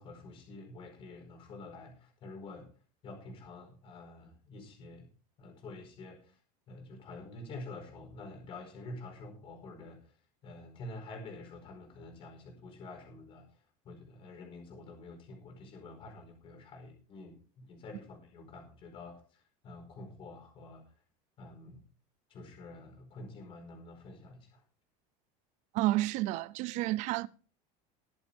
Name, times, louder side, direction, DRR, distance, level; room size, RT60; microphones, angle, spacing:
voice 1, 0.0-2.7 3.0-5.1 5.4-6.4 6.7-10.1 10.4-13.5 13.8-20.8 21.4-21.8 22.3-24.6, left 2 dB, 35° left, 4.7 m, -48 dB
voice 2, 25.7-27.3, right 17 dB, 45° right, 0.5 m, -30 dB
21.0 x 8.1 x 3.5 m
cardioid pair, 170°, 17 cm